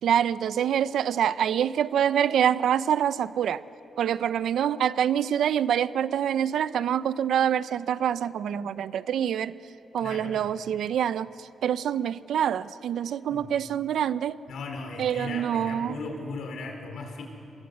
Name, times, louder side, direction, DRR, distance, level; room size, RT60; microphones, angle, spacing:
voice 1, 0.0-3.6 4.0-9.6 9.9-14.4 15.0-15.9, right 9 dB, 80° right, 15 dB, 0.6 m, -26 dB
voice 2, 10.0-10.4 13.0-13.6 14.5-17.2, left 3 dB, 75° left, 3 dB, 4.4 m, -37 dB
27.0 x 21.0 x 8.2 m, 2.8 s
wide cardioid pair, 165°, 0 cm